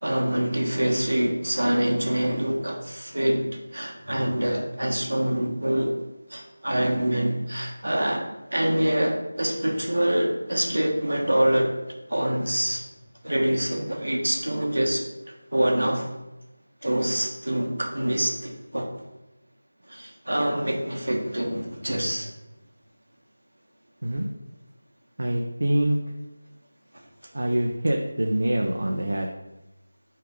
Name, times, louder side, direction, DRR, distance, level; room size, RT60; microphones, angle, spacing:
voice 1, 0.0-6.0 6.3-8.3 8.5-11.7 12.1-12.8 13.2-15.0 15.5-16.1 16.8-18.9 19.9-22.3 26.9-27.0, right 1 dB, 85° right, 1 dB, 1.5 m, -25 dB
voice 2, 25.2-26.0 27.3-29.3, right 1 dB, 70° right, 1 dB, 0.8 m, -25 dB
5.6 x 5.0 x 3.8 m, 1.0 s
figure-of-eight pair, 170°, 0 cm